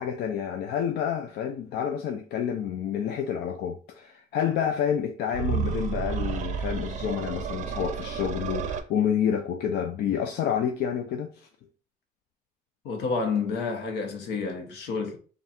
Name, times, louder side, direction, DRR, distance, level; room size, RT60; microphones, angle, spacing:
voice 1, 0.0-11.5, left 8 dB, 70° left, 0.5 m, -29 dB
sound 1, 5.3-8.8, right 7 dB, 45° right, 0.5 m, -31 dB
voice 2, 12.8-15.2, left 4 dB, 85° left, 1.0 m, -29 dB
3.5 x 2.4 x 4.2 m
cardioid pair, 110°, 17 cm